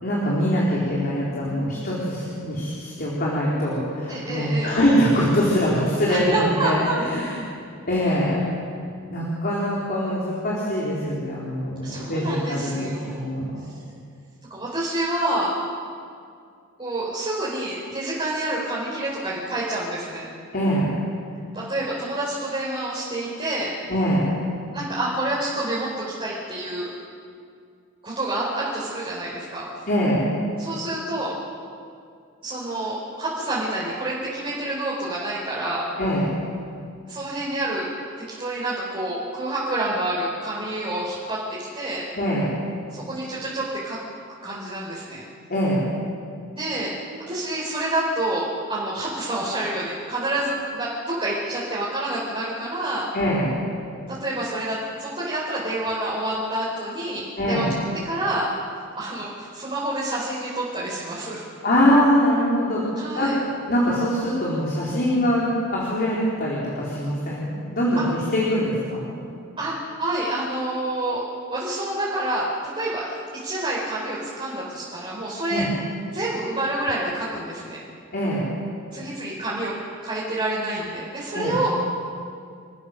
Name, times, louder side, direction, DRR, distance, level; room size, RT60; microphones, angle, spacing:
voice 1, 0.0-7.5 7.9-8.4 9.1-13.7 20.5-20.9 23.9-24.3 29.9-30.2 36.0-36.2 42.2-42.5 45.5-45.9 53.1-53.5 57.4-57.7 61.6-63.3 63.7-69.2 75.5-75.7 78.1-78.5 81.3-81.6, equal, 45° left, -5 dB, 4.2 m, -23 dB
voice 2, 4.1-4.7 6.1-7.0 11.8-13.3 14.5-15.5 16.8-20.3 21.5-23.7 24.7-26.9 28.0-29.6 30.6-31.3 32.4-35.9 37.1-37.8 38.4-42.0 42.9-44.0 44.4-45.2 46.5-46.9 47.3-53.1 54.1-57.7 58.0-58.5 58.9-61.4 63.0-63.4 68.0-68.1 69.6-71.2 71.5-72.5 72.7-75.6 76.1-77.8 78.9-79.7 80.0-81.7, right 1 dB, 25° right, -8 dB, 4.9 m, -28 dB
28.5 x 14.5 x 7.3 m, 2.3 s
head